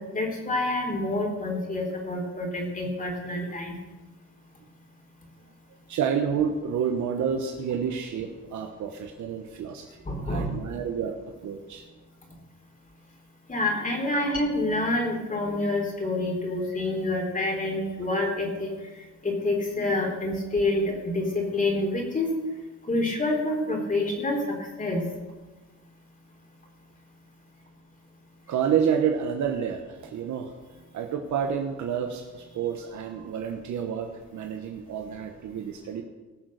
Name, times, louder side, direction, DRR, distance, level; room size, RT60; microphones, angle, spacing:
voice 1, 0.1-3.8 10.1-10.5 13.5-18.7 19.2-22.3 22.9-25.0, left 2 dB, 25° left, 0 dB, 3.9 m, -27 dB
voice 2, 5.7-11.8 14.1-14.2 28.5-30.5 30.9-36.0, right 7 dB, 70° right, 4 dB, 1.2 m, -29 dB
18.5 x 6.5 x 6.5 m, 1.2 s
cardioid pair, 90°, 30 cm